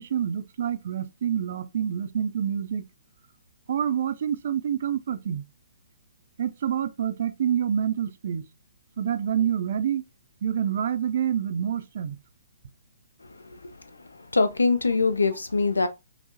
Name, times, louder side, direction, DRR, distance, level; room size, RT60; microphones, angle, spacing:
voice 1, 0.0-2.8 3.7-5.4 6.4-8.4 9.0-10.0 10.4-12.2, right 9 dB, 50° right, 0.4 m, -27 dB
voice 2, 14.3-15.9, left 3 dB, 75° left, 0.5 m, -22 dB
5.6 x 2.1 x 2.6 m
figure-of-eight pair, 125°, 0 cm